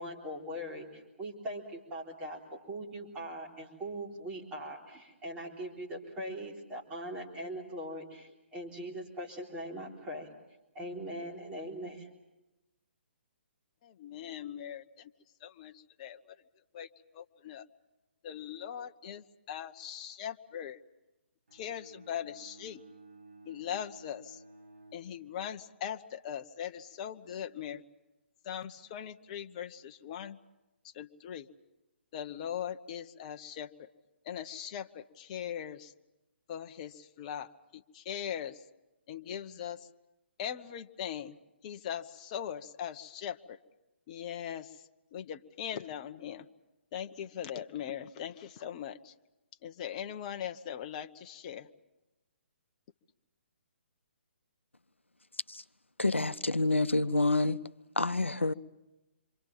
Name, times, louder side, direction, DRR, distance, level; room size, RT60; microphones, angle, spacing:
voice 1, 0.0-10.3 10.7-12.1, equal, 15° right, 3.7 m, -41 dB
voice 2, 13.8-15.1 15.4-16.4 16.7-17.7 18.2-20.8 21.5-22.8 23.4-24.4 24.9-27.8 28.4-30.4 30.8-31.5 32.1-33.9 34.2-35.9 36.5-38.7 39.1-39.9 40.4-43.6 44.1-46.5 46.9-49.1 49.6-51.7, left 9 dB, 35° left, 0.9 m, -40 dB
Bowed string instrument, 21.5-25.7, right 2 dB, 70° right, 6.5 m, -55 dB
voice 3, 56.0-57.6 58.0-58.5, left 2 dB, 85° left, 0.8 m, -28 dB
27.5 x 24.5 x 7.4 m
figure-of-eight pair, 130°, 6 cm